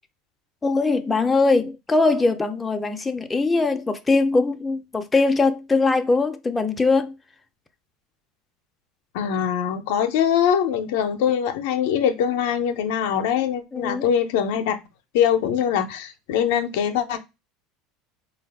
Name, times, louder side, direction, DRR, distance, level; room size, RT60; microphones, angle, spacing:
voice 1, 0.6-7.1 13.7-14.0, left 3 dB, 15° left, 0.4 m, -21 dB
voice 2, 9.1-14.8 15.1-17.2, left 8 dB, 75° left, 0.5 m, -22 dB
3.9 x 2.3 x 3.4 m
supercardioid pair, 100°, 0 cm